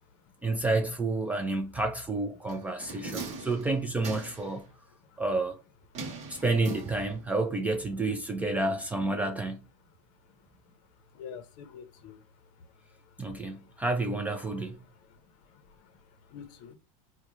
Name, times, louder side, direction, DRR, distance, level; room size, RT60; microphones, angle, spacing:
voice 1, 0.4-4.6 5.2-5.6 6.3-9.6 13.2-14.8, right 2 dB, 10° right, 0.3 m, -30 dB
sound 1, 2.5-4.6 5.9-7.4 7.7-7.8, right 3 dB, 40° right, 0.9 m, -41 dB
voice 2, 11.1-12.2 14.4-14.5 15.0-15.2 15.5-16.0 16.3-16.7, left 7 dB, 50° left, 0.6 m, -46 dB
3.6 x 2.2 x 3.0 m
supercardioid pair, 145°, 17 cm